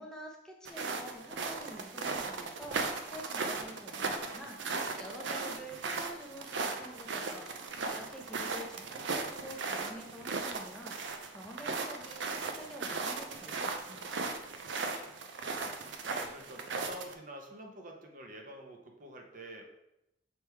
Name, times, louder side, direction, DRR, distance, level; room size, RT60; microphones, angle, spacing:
voice 1, 0.0-11.0 11.3-14.3, equal, 5° left, -1 dB, 0.8 m, -48 dB
sound 1, 0.7-17.1, right 4 dB, 70° right, 0.6 m, -37 dB
voice 2, 8.7-9.1 14.9-19.6, right 1 dB, 45° right, 2 dB, 1.0 m, -48 dB
6.5 x 3.5 x 4.5 m, 0.85 s
head